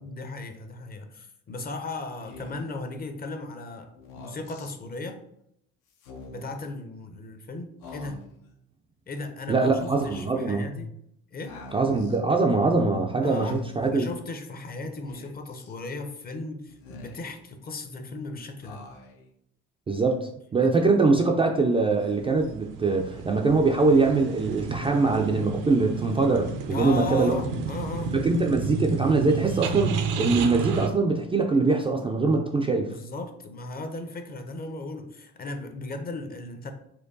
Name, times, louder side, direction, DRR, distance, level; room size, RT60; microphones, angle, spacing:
voice 1, 0.0-3.9 4.1-5.2 6.3-8.2 9.1-10.9 11.3-11.5 13.2-18.8 20.6-20.7 26.7-28.1 32.9-36.7, left 2 dB, 30° left, 6 dB, 0.6 m, -36 dB
Speech, 2.2-2.8 3.9-4.7 5.9-6.6 7.8-8.5 9.7-10.4 11.4-12.2 13.2-13.9 15.1-15.7 16.7-17.5 18.6-19.3, left 3 dB, 80° left, 0.7 m, -46 dB
voice 2, 9.5-10.8 11.7-14.1 19.9-27.4 28.1-32.9, right 3 dB, 15° right, 1 dB, 0.3 m, -23 dB
sound 1, 22.0-30.9, right 6 dB, 70° right, 0.6 m, -32 dB
4.4 x 2.3 x 2.6 m, 0.75 s
supercardioid pair, 70°, 33 cm